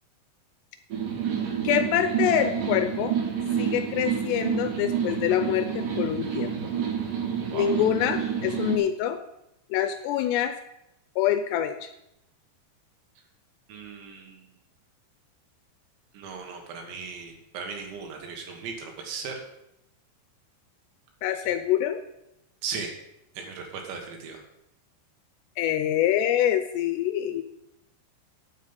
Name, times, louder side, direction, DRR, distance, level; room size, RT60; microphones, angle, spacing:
sound 1, 0.9-8.8, right 8 dB, 60° right, 2.6 m, -29 dB
voice 1, 1.6-3.1 3.6-6.5 7.5-9.2 9.7-10.5 11.2-11.9 21.2-22.0 25.6-27.4, left 11 dB, 85° left, 9 dB, 2.5 m, -25 dB
voice 2, 13.7-14.4 16.1-19.4 22.6-22.9 23.4-24.4, right 5 dB, 80° right, 2 dB, 3.7 m, -37 dB
9.6 x 7.5 x 5.3 m, 0.84 s
omnidirectional pair, 5.2 m